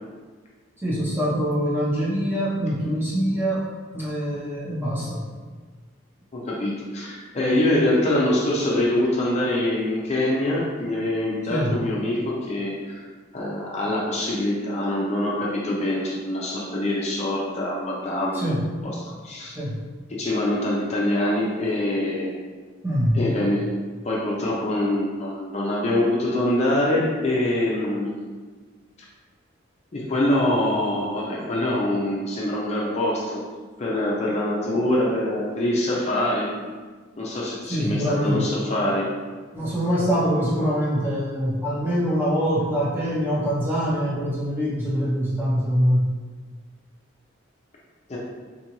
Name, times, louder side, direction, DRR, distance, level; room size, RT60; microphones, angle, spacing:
voice 1, 0.8-3.6 3.9-5.2 11.5-11.8 18.3-18.7 19.5-19.8 22.8-23.2 37.7-38.5 39.5-46.1, equal, 10° right, -7 dB, 0.7 m, -24 dB
voice 2, 6.3-13.0 13.3-18.5 18.8-19.6 20.1-22.3 23.1-23.7 24.0-28.1 29.9-33.4 33.8-36.5 37.2-39.1 48.1-48.2, left 1 dB, 35° left, -4 dB, 0.4 m, -24 dB
3.8 x 2.4 x 2.9 m, 1.4 s
head